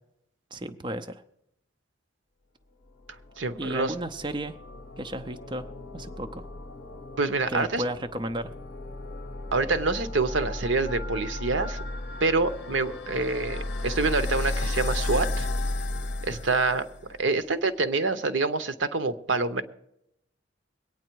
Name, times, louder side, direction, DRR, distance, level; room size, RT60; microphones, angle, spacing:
voice 1, 0.5-1.2 3.6-4.6 5.0-6.5 7.5-8.5, right 1 dB, 25° right, 7 dB, 0.5 m, -33 dB
sound 1, 3.0-17.2, left 2 dB, 55° left, 0.8 m, -34 dB
voice 2, 3.4-3.9 7.2-7.8 9.5-11.8 12.2-15.5 16.2-16.8 17.2-19.6, right 3 dB, 75° right, 11 dB, 0.8 m, -26 dB
22.0 x 9.1 x 4.6 m, 0.80 s
head